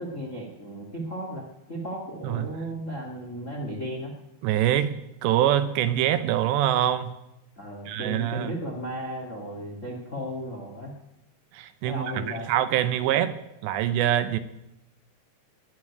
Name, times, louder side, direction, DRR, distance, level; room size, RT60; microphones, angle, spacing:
voice 1, 0.0-4.1 7.6-10.9 11.8-12.5, equal, 75° left, 1 dB, 0.7 m, -35 dB
voice 2, 4.4-7.1 7.9-8.5 11.5-13.4 13.6-14.4, right 11 dB, 80° right, 11 dB, 2.8 m, -24 dB
19.5 x 6.8 x 9.7 m, 0.88 s
omnidirectional pair, 5.4 m